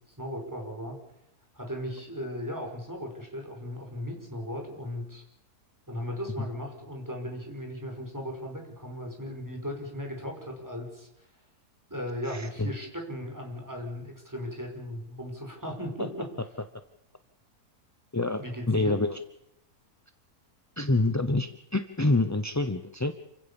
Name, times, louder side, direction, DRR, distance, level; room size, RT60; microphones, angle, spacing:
voice 1, 0.2-1.0 1.5-5.2 5.9-11.1 11.9-16.3 18.4-19.0, equal, 10° right, 2 dB, 5.5 m, -37 dB
voice 2, 12.3-12.7 18.1-18.4 18.7-19.2 20.8-23.1, left 2 dB, 15° left, 9 dB, 0.6 m, -26 dB
28.0 x 16.0 x 7.2 m, 0.81 s
omnidirectional pair, 1.7 m